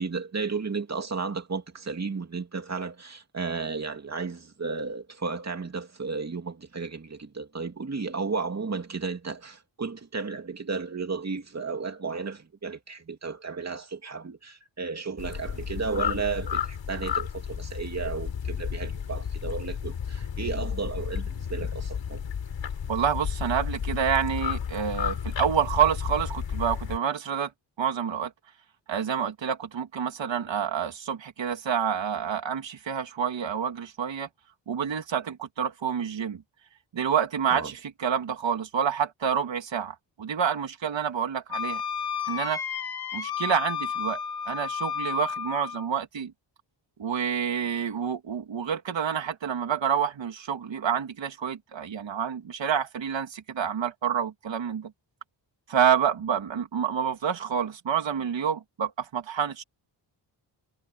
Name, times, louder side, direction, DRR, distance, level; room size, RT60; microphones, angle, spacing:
voice 1, 0.0-22.2 37.5-37.7, right 4 dB, 35° right, 2.7 m, -33 dB
sound 1, 15.2-27.0, left 8 dB, 75° left, 3.6 m, -32 dB
voice 2, 22.9-27.5 27.8-28.3 28.9-34.3 34.7-36.4 36.9-41.8 42.3-42.6 43.1-44.2 44.5-46.3 47.0-54.9 55.7-59.6, right 8 dB, 75° right, 2.7 m, -28 dB
Wind instrument woodwind instrument, 41.5-45.9, left 7 dB, 55° left, 2.0 m, -32 dB
wide cardioid pair, 135°, 45 cm